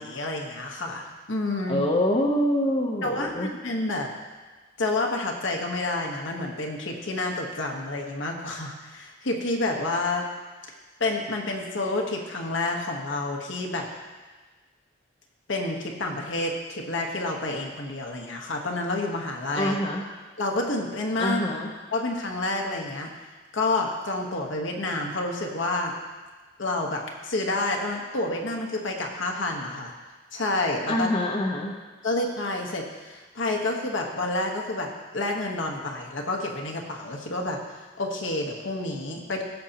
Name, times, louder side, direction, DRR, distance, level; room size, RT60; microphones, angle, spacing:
voice 1, 0.0-1.9 3.0-4.1 4.8-10.3 11.0-13.9 15.5-19.8 20.4-21.4 21.9-23.1 23.5-25.9 26.6-29.9 30.3-31.1 32.0-37.6 38.0-39.4, left 2 dB, 80° left, 0 dB, 1.3 m, -29 dB
voice 2, 1.7-3.5 19.5-20.0 21.2-21.7 30.9-31.7, left 1 dB, 30° left, 0 dB, 0.8 m, -25 dB
16.0 x 7.0 x 2.9 m, 1.3 s
head